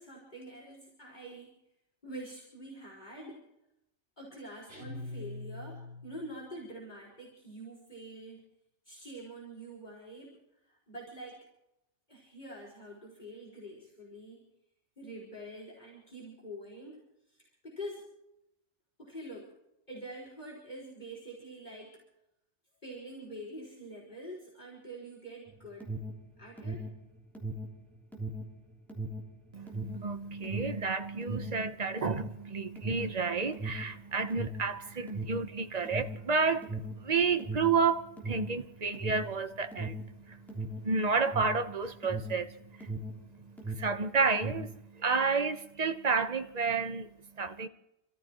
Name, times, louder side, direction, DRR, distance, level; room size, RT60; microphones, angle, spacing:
voice 1, 0.0-1.5 2.0-3.5 4.2-8.5 8.9-11.5 12.1-14.5 15.0-17.0 17.3-18.1 19.0-19.5 19.9-22.0 22.8-25.9 26.4-26.9, right 1 dB, 40° left, 5.1 m, -46 dB
sound 1, 4.7-6.4, left 2 dB, 80° right, 4.8 m, -43 dB
Alarm, 25.5-43.3 43.5-44.8, right 1 dB, ahead, 3.3 m, -38 dB
voice 2, 29.5-47.7, right 4 dB, 35° right, 1.1 m, -31 dB
30.0 x 14.0 x 3.1 m
omnidirectional pair, 1.2 m